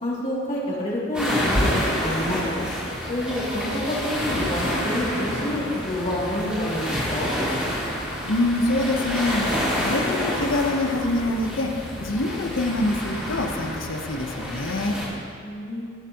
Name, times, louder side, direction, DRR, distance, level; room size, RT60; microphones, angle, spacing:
voice 1, 0.0-2.5 3.1-7.3 15.4-15.9, left 1 dB, 40° left, -7 dB, 2.6 m, -28 dB
sound 1, 1.1-15.1, equal, 5° right, 2.7 m, -28 dB
voice 2, 8.3-11.7 12.0-15.0, left 2 dB, 85° left, 4 dB, 0.9 m, -25 dB
17.0 x 7.0 x 2.9 m, 2.3 s
head